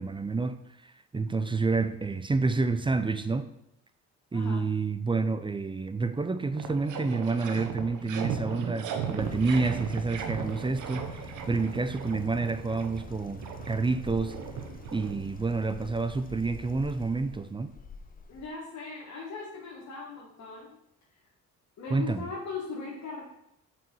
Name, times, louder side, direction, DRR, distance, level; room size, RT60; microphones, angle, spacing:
voice 1, 0.0-3.5 4.3-14.4 14.9-17.7 21.9-22.3, right 3 dB, 15° right, 11 dB, 0.4 m, -29 dB
voice 2, 4.3-4.6 18.3-20.8 21.8-23.2, left 4 dB, 65° left, -5 dB, 1.6 m, -39 dB
sound 1, 5.9-6.0 6.2-15.7, right 7 dB, 80° right, 0.9 m, -37 dB
sound 2, 9.2-18.5, left 6 dB, 30° left, 0.6 m, -46 dB
6.0 x 4.8 x 5.4 m, 0.80 s
cardioid pair, 90°, 30 cm